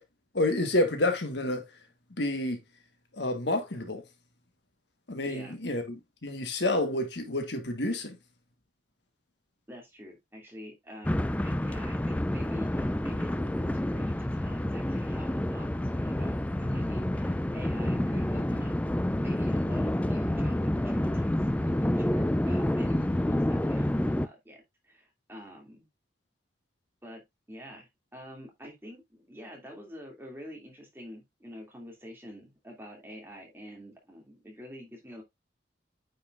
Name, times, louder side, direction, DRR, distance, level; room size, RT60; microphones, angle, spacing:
voice 1, 0.3-1.6 2.2-2.6 3.1-4.0 5.1-8.2, left 1 dB, 65° left, 1.5 m, -29 dB
voice 2, 5.3-5.6 9.7-18.7 19.2-25.9 27.0-27.2 27.5-35.2, equal, 10° right, 2.5 m, -47 dB
sound 1, 11.0-24.3, left 1 dB, 5° left, 0.3 m, -28 dB
9.1 x 5.7 x 2.5 m
head